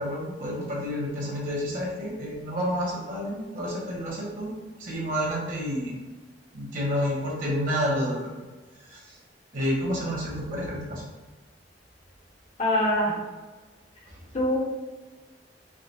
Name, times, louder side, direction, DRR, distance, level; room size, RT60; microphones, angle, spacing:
voice 1, 0.0-4.5 4.8-5.9 6.5-8.2 8.9-9.0 9.5-11.0 14.1-14.2, equal, 50° right, -4 dB, 1.4 m, -29 dB
voice 2, 12.6-13.2 14.3-14.6, left 1 dB, 40° left, -5 dB, 1.2 m, -23 dB
5.2 x 2.1 x 4.1 m, 1.2 s
head